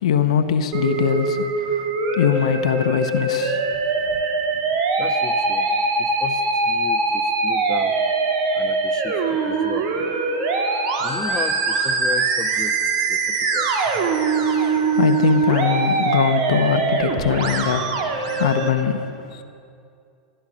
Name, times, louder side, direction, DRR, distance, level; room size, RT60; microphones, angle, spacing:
voice 1, 0.0-3.6 4.1-4.2 14.3-19.4, left 8 dB, 75° left, 8 dB, 0.9 m, -22 dB
Musical instrument, 0.7-18.7, right 4 dB, 60° right, 1.8 m, -22 dB
voice 2, 5.0-5.7 6.0-6.4 6.7-8.0 8.5-10.3 11.0-12.8 13.1-13.7, left 5 dB, 20° left, 5 dB, 1.1 m, -34 dB
14.5 x 13.5 x 6.3 m, 2.5 s
hypercardioid pair, 100°, 3 cm